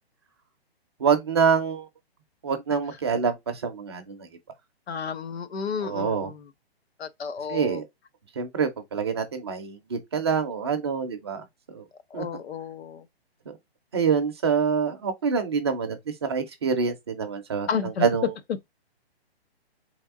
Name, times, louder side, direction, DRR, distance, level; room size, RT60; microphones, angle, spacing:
voice 1, 1.0-1.9 2.4-4.2 5.8-6.3 7.5-7.8 8.4-11.4 11.7-11.8 12.1-12.2 13.5-13.6 13.9-16.0 16.2-18.3, right 6 dB, 25° right, 0.6 m, -26 dB
voice 2, 4.9-6.4 7.0-7.8 12.1-13.0 17.7-18.1, left 6 dB, 75° left, 0.9 m, -32 dB
3.7 x 3.5 x 3.6 m
hypercardioid pair, 170°, 32 cm